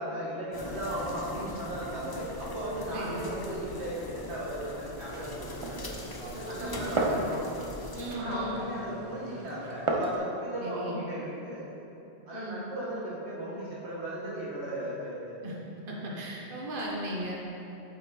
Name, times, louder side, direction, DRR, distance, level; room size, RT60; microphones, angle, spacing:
voice 1, 0.0-5.9 6.3-7.4 8.2-11.6 12.2-15.3, right 1 dB, 75° right, -7 dB, 2.0 m, -36 dB
sound 1, 0.5-8.2, left 2 dB, 35° left, 0.4 m, -42 dB
voice 2, 2.9-3.2 6.6-6.8 7.9-8.6 10.6-11.0 12.3-12.6 15.4-15.6 15.9-17.3, right 1 dB, 55° right, -3 dB, 1.3 m, -36 dB
Glass, 5.0-10.2, right 2 dB, 35° right, 0.6 m, -35 dB
8.4 x 5.5 x 3.8 m, 2.9 s
omnidirectional pair, 1.1 m